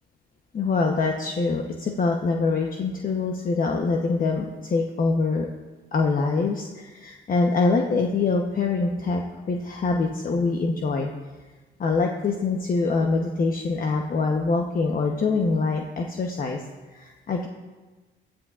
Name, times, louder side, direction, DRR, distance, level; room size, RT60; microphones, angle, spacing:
voice 1, 0.5-5.5 5.9-9.2 9.5-11.1 11.8-16.6 16.9-17.5, left 4 dB, 45° left, 2 dB, 1.0 m, -24 dB
16.5 x 11.5 x 2.5 m, 1.3 s
cardioid pair, 90°, 20 cm